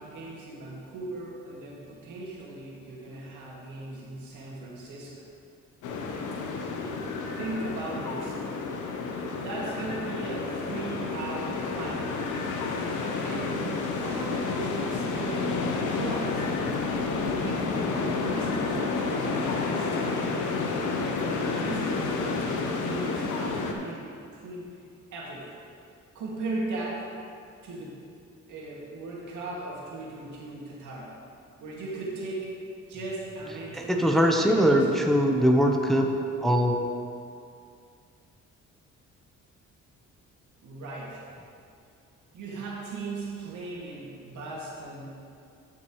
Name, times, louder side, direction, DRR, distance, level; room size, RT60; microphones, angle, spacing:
voice 1, 0.0-5.1 6.5-6.7 7.4-8.4 9.4-12.0 13.2-15.5 15.9-16.4 17.1-20.5 21.0-22.4 22.7-24.7 25.1-25.5 26.1-27.1 27.6-28.0 28.5-31.2 31.6-32.5 32.8-35.2 40.6-41.3 42.3-45.2, right 2 dB, 80° right, -4 dB, 2.2 m, -38 dB
sound 1, 5.8-23.7, left 4 dB, 80° left, 0.9 m, -30 dB
voice 2, 33.8-36.1 36.4-36.7, equal, ahead, 2 dB, 0.7 m, -21 dB
12.5 x 6.1 x 3.1 m, 2.4 s
cardioid pair, 90°, 30 cm